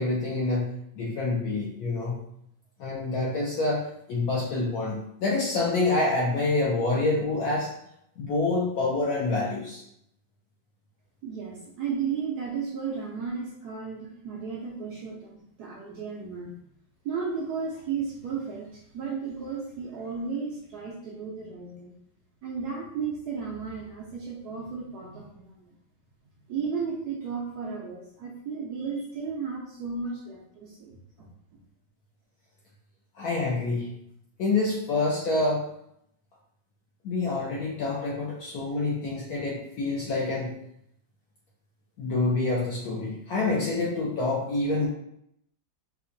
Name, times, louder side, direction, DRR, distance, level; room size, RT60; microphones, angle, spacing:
voice 1, 0.0-2.2 2.8-7.7 8.2-9.8 33.2-33.9 34.4-35.6 37.0-40.6 42.0-44.9, left 2 dB, 70° left, -4 dB, 0.9 m, -27 dB
voice 2, 11.2-16.5 17.0-21.9 22.4-25.7 26.5-31.3, right 5 dB, 70° right, -3 dB, 0.9 m, -34 dB
4.6 x 2.1 x 2.6 m, 0.74 s
omnidirectional pair, 2.1 m